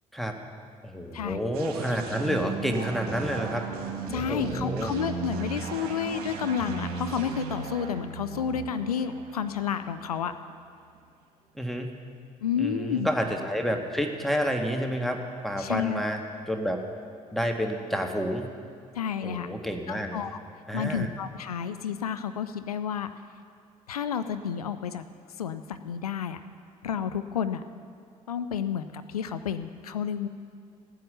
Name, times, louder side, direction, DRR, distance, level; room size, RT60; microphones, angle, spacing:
voice 1, 0.8-3.6 4.1-4.9 11.5-11.9 12.6-16.9 17.3-18.5 19.2-20.2 20.7-21.1, equal, ahead, 3 dB, 1.6 m, -29 dB
sound 1, 1.5-11.0, right 5 dB, 55° right, 1.8 m, -36 dB
voice 2, 4.1-10.3 12.4-13.1 15.6-16.0 18.9-19.5 19.9-20.3 20.7-23.1 23.9-25.0 25.4-26.4 26.8-27.6 28.3-30.3, left 7 dB, 80° left, 11 dB, 0.4 m, -30 dB
15.5 x 9.3 x 6.6 m, 2.2 s
figure-of-eight pair, 50°, 19 cm